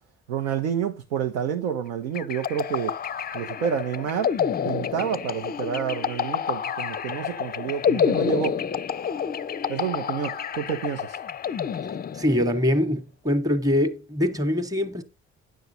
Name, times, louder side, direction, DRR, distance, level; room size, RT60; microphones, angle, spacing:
voice 1, 0.3-2.9 3.3-4.4 4.6-8.6 9.7-11.2, right 8 dB, 80° right, 0.7 m, -29 dB
sound 1, 2.1-12.6, left 7 dB, 25° left, 0.5 m, -28 dB
voice 2, 12.1-15.0, left 1 dB, 10° right, 1.1 m, -23 dB
9.3 x 6.6 x 4.0 m
figure-of-eight pair, 45°, 36 cm